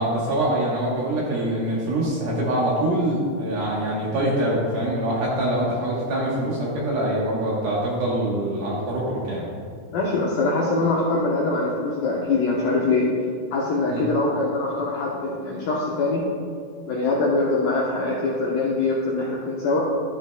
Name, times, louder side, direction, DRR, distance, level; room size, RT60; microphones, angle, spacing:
voice 1, 0.0-9.4 13.9-14.1, right 1 dB, 65° right, -4 dB, 2.6 m, -24 dB
voice 2, 9.9-13.1 13.5-16.2 16.8-19.8, left 3 dB, 75° left, -4 dB, 2.0 m, -23 dB
12.0 x 10.5 x 2.3 m, 2.1 s
omnidirectional pair, 5.5 m